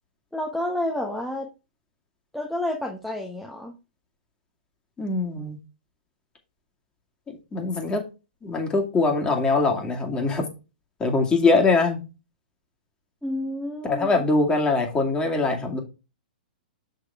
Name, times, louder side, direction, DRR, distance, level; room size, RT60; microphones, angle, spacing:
voice 1, 0.3-1.5 2.3-3.7 13.2-14.1, left 1 dB, ahead, 0 dB, 1.1 m, -29 dB
voice 2, 5.0-5.6 7.3-8.0 8.4-10.4 11.0-12.0 13.8-15.8, left 3 dB, 15° left, 3 dB, 2.3 m, -22 dB
6.7 x 6.3 x 3.6 m, 0.29 s
hypercardioid pair, 125°, 5 cm